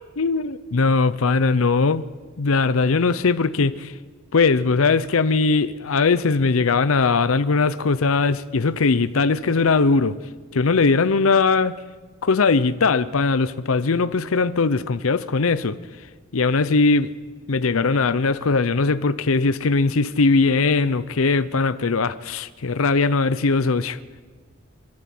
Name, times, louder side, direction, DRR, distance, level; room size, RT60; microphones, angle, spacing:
voice 1, 0.2-2.0 2.4-3.9 4.3-10.2 10.5-11.7 12.2-15.8 16.3-17.1 17.5-24.0, left 4 dB, 90° left, 0.7 m, -20 dB
28.0 x 12.0 x 7.8 m
head